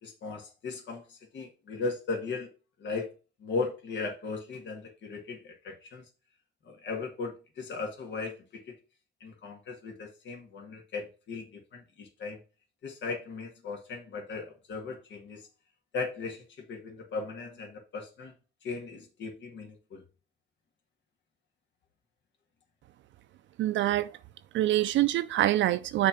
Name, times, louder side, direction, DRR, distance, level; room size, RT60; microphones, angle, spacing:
voice 1, 0.0-2.5 2.8-3.1 3.4-6.1 6.6-8.8 9.2-12.4 12.8-15.5 15.9-18.3 18.6-20.0, left 4 dB, 65° left, 1.8 m, -37 dB
voice 2, 23.6-24.1 24.5-26.1, right 14 dB, 70° right, 0.4 m, -25 dB
6.5 x 3.4 x 5.8 m
cardioid pair, 90°, 20 cm